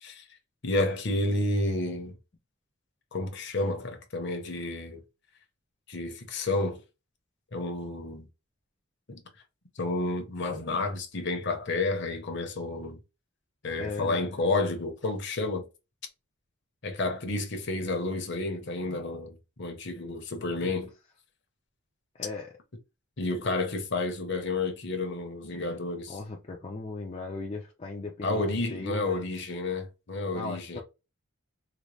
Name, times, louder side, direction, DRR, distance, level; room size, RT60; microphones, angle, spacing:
voice 1, 0.0-0.4 0.6-2.2 3.1-5.0 5.9-6.8 7.5-8.3 9.1-9.2 9.8-13.0 13.6-15.6 16.8-20.9 23.2-26.2 28.2-30.8, left 2 dB, 55° left, 0.8 m, -30 dB
voice 2, 13.8-14.7 20.6-20.7 22.1-22.5 26.1-29.3 30.3-30.8, left 3 dB, 30° left, 0.5 m, -38 dB
3.9 x 2.1 x 3.2 m
head